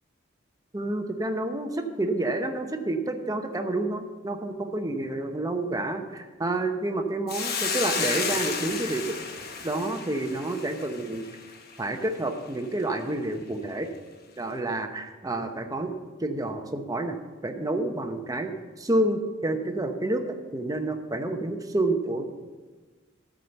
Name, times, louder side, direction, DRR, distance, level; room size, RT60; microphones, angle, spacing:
voice 1, 0.7-9.2 9.6-11.2 11.8-13.9 14.4-15.9 16.2-17.2 17.4-18.5 18.8-22.2, right 2 dB, 20° right, 6 dB, 0.8 m, -29 dB
Hiss, 7.3-11.8, left 5 dB, 50° left, 1.1 m, -32 dB
13.0 x 5.0 x 6.9 m, 1.4 s
head